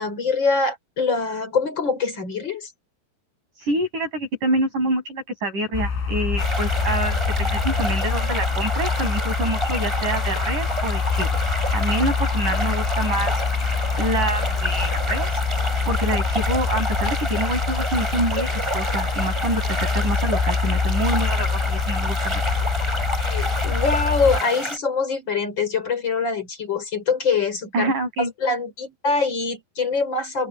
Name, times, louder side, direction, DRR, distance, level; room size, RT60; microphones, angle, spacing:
voice 1, 0.0-2.7 23.2-27.9 28.2-30.5, left 4 dB, 25° left, 4.5 m, -24 dB
voice 2, 3.6-11.3 11.7-13.3 14.0-15.4 15.9-18.5 18.7-22.4 27.7-28.3, right 1 dB, 45° right, 8.6 m, -26 dB
sound 1, 5.7-24.4, left 5 dB, 80° left, 9.1 m, -25 dB
sound 2, 6.4-24.8, equal, 5° right, 6.1 m, -29 dB
open air
omnidirectional pair, 5.3 m